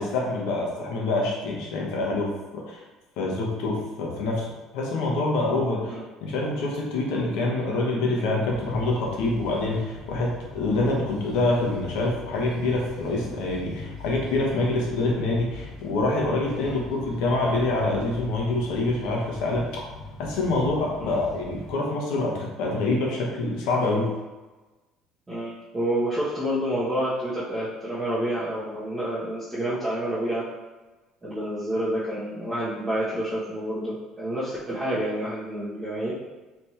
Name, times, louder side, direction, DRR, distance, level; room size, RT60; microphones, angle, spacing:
voice 1, 0.0-2.8 3.2-19.8 20.2-24.1, left 2 dB, 80° left, -2 dB, 1.1 m, -26 dB
sound 1, 8.5-21.7, left 3 dB, 50° left, 1.1 m, -41 dB
voice 2, 25.3-30.5 31.2-36.2, right 1 dB, 10° right, -13 dB, 1.1 m, -28 dB
3.4 x 3.1 x 4.3 m, 1.2 s
cardioid pair, 155°, 0 cm